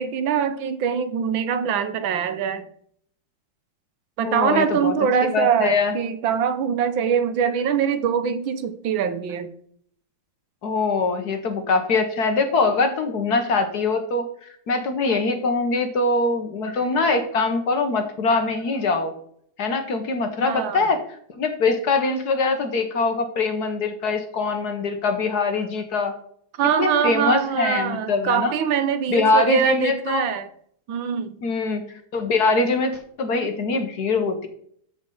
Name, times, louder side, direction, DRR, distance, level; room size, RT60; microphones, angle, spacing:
voice 1, 0.0-2.7 4.2-9.5 20.4-20.8 26.6-30.5 30.9-31.4, right 7 dB, 70° right, 10 dB, 1.5 m, -23 dB
voice 2, 4.2-4.9 5.3-5.9 10.6-14.3 14.7-19.1 19.6-21.0 21.3-26.1 26.8-28.5 29.1-30.2 31.4-34.5, left 3 dB, 55° left, 7 dB, 1.4 m, -23 dB
13.5 x 5.5 x 3.8 m, 0.62 s
omnidirectional pair, 2.3 m